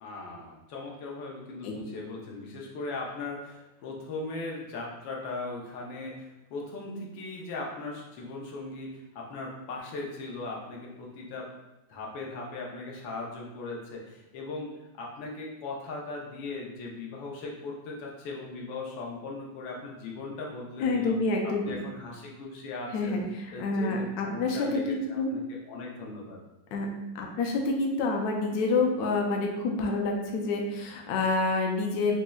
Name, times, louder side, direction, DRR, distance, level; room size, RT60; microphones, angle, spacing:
voice 1, 0.0-11.5 11.9-14.7 15.0-21.2 21.4-23.2 23.5-26.4, left 3 dB, 85° left, -2 dB, 1.4 m, -38 dB
voice 2, 20.8-21.7 22.9-25.3 26.7-26.9 27.1-32.1, left 3 dB, 70° left, 1 dB, 0.9 m, -28 dB
5.1 x 2.0 x 2.2 m, 0.99 s
omnidirectional pair, 2.0 m